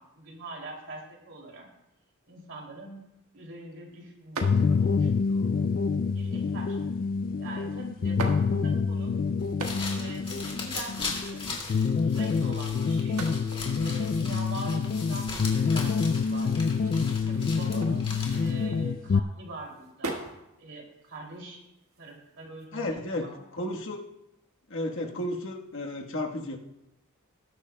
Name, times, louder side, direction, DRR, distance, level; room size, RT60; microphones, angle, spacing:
voice 1, 0.0-1.7 2.3-3.0 3.3-5.5 6.1-6.8 7.4-9.2 9.9-13.3 13.8-16.6 17.1-20.3 20.6-21.6 22.0-23.4, right 2 dB, 60° right, 0 dB, 2.7 m, -43 dB
sound 1, 4.4-19.2, left 5 dB, 45° left, 0.3 m, -27 dB
sound 2, 4.4-5.0 5.8-6.3 7.3-7.4 8.0-8.9 9.4-10.1 10.4-10.5 10.7-11.7 13.0-19.1 19.6-20.4 20.9-22.7, right 2 dB, 85° right, 1.5 m, -41 dB
sound 3, 9.4-18.6, left 3 dB, 25° left, 2.3 m, -39 dB
voice 2, 22.7-24.1 24.7-26.6, left 1 dB, 65° left, 1 dB, 1.3 m, -33 dB
19.5 x 10.0 x 2.2 m, 0.88 s
head